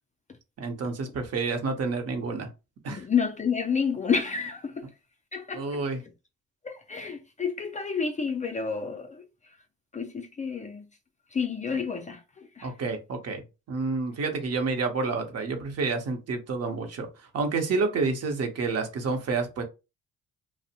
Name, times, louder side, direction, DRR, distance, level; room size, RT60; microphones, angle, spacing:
voice 1, 0.6-2.5 2.8-3.1 5.5-6.0 12.6-13.4 13.7-17.1 17.3-19.6, right 4 dB, 55° right, 0.7 m, -29 dB
voice 2, 2.9-4.8 5.3-5.8 6.6-9.3 9.9-10.9 11.3-12.7, left 6 dB, 25° left, 0.3 m, -30 dB
2.5 x 2.0 x 2.8 m
cardioid pair, 90°, 30 cm